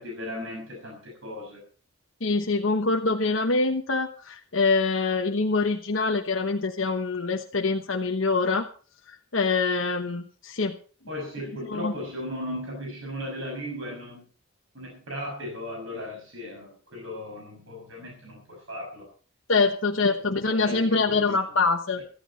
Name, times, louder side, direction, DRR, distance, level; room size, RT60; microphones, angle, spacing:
voice 1, 0.0-1.6 11.1-14.3 14.7-19.1 20.0-21.6, left 1 dB, 65° right, 0 dB, 6.3 m, -37 dB
voice 2, 2.2-8.7 9.3-10.8 11.7-11.9 19.5-22.0, left 3 dB, 65° left, 3 dB, 1.2 m, -24 dB
15.5 x 14.0 x 4.1 m, 0.40 s
head